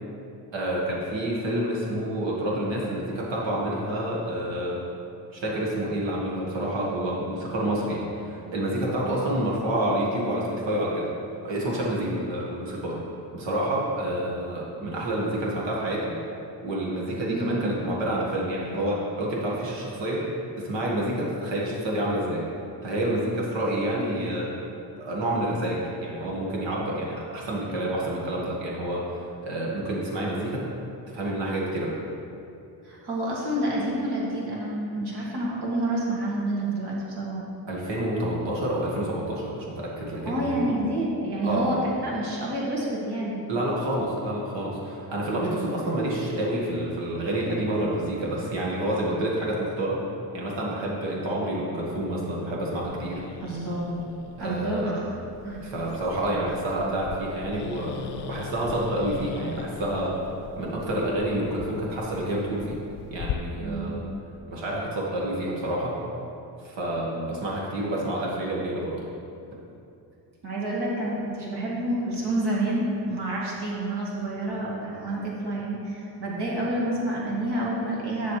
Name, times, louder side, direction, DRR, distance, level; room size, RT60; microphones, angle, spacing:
voice 1, 0.5-4.8 5.3-11.1 11.4-13.0 13.3-16.2 16.6-20.3 20.6-22.4 22.8-24.5 25.0-30.7 31.1-31.9 37.7-40.5 41.4-41.8 43.5-50.0 50.3-53.2 54.4-55.0 55.6-60.1 60.6-62.8 63.1-64.1 64.5-65.9 66.6-69.0, right 1 dB, 90° right, -4 dB, 1.7 m, -28 dB
voice 2, 32.8-37.4 40.3-43.4 53.4-54.0 54.4-55.1 55.4-55.6 63.6-64.0 70.4-78.4, right 1 dB, 65° right, -5 dB, 2.0 m, -28 dB
Growling, 52.8-63.3, left 8 dB, 65° left, 0.5 m, -40 dB
9.3 x 7.3 x 3.2 m, 2.7 s
cardioid pair, 100°, 43 cm